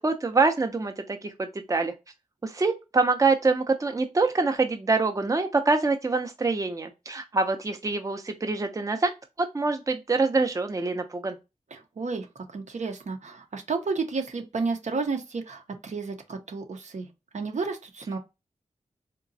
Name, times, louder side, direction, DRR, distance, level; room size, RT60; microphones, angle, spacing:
voice 1, 0.0-1.9 2.4-9.1 9.4-11.4, right 3 dB, 25° right, 0.5 m, -25 dB
voice 2, 11.7-12.3 12.5-17.1 17.3-18.2, right 4 dB, 65° right, 0.7 m, -31 dB
3.8 x 2.2 x 2.6 m
cardioid pair, 45°, 13 cm